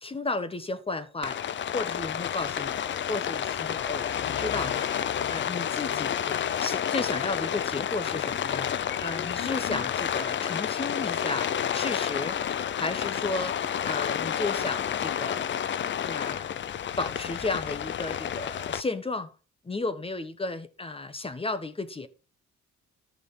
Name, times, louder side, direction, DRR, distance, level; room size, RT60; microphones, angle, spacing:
voice 1, 0.0-1.4 1.7-6.3 6.6-15.5 16.0-16.5 17.0-19.3 19.6-22.1, left 3 dB, 20° left, 1.1 m, -34 dB
Rain, 1.2-18.8, left 9 dB, 40° left, 0.5 m, -30 dB
12.5 x 6.2 x 3.2 m
cardioid pair, 90°, 30 cm